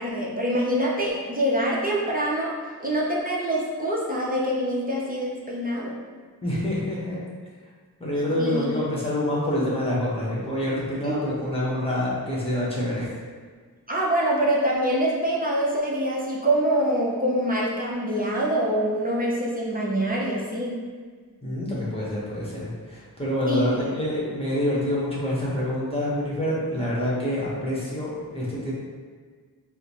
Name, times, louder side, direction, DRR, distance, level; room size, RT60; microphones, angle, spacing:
voice 1, 0.0-2.5 2.8-5.9 8.4-8.7 11.0-11.4 13.9-20.7 23.5-23.6, right 1 dB, 25° right, -5 dB, 0.7 m, -25 dB
voice 2, 6.4-7.2 8.0-13.1 21.4-28.7, left 1 dB, 15° left, -7 dB, 1.1 m, -27 dB
4.8 x 2.1 x 2.9 m, 1.5 s
wide cardioid pair, 60°, 38 cm